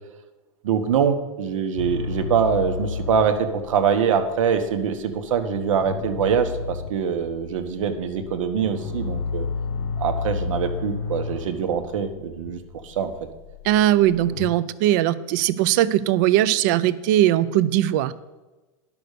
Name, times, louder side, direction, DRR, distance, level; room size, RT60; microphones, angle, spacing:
voice 1, 0.6-9.5 10.0-13.1, right 7 dB, 85° right, 7 dB, 1.3 m, -24 dB
sound 1, 1.8-14.5, left 5 dB, 70° left, 1.0 m, -32 dB
voice 2, 13.6-18.1, right 13 dB, 35° right, 16 dB, 0.4 m, -20 dB
10.5 x 6.1 x 6.6 m, 1.2 s
supercardioid pair, 175°, 16 cm